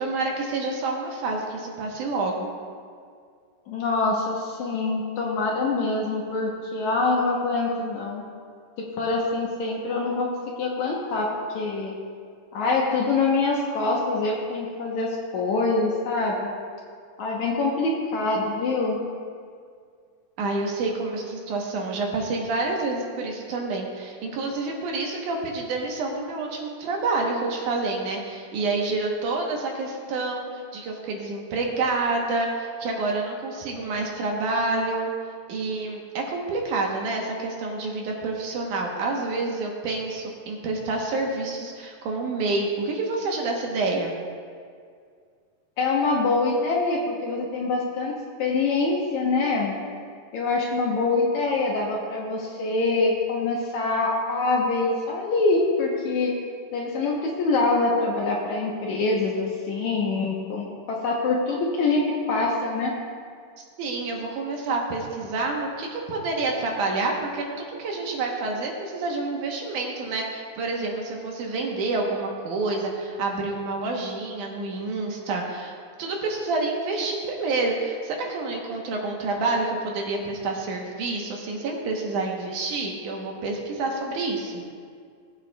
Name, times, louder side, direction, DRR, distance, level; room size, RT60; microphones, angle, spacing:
voice 1, 0.0-2.5 20.4-35.1 35.5-44.1 63.6-84.6, right 3 dB, 70° right, 0 dB, 2.3 m, -28 dB
voice 2, 3.7-8.2 8.8-12.0 12.5-16.5 17.2-19.0 45.8-49.8 50.3-56.4 56.7-62.9, left 3 dB, 70° left, -2 dB, 2.0 m, -25 dB
19.5 x 8.1 x 2.3 m, 2.1 s
omnidirectional pair, 4.1 m